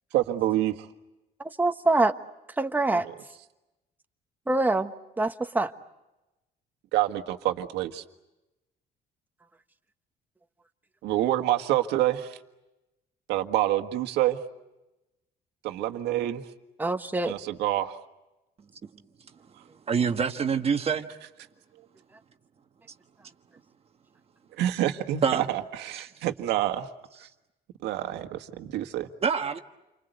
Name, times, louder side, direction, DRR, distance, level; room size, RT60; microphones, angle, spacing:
voice 1, 0.1-0.9 2.9-3.1 6.9-8.0 11.0-12.4 13.3-14.4 15.6-16.4 17.2-18.0 24.6-26.9 27.8-29.1, right 13 dB, 85° right, 7 dB, 1.7 m, -27 dB
voice 2, 1.6-2.1 2.6-3.1 4.5-4.9 5.2-5.7 16.8-17.3, right 2 dB, 10° right, 6 dB, 1.4 m, -24 dB
voice 3, 19.9-21.1 25.2-25.4 29.2-29.6, right 6 dB, 35° right, 6 dB, 1.4 m, -25 dB
29.5 x 25.0 x 8.1 m, 0.99 s
cardioid pair, 110°, 17 cm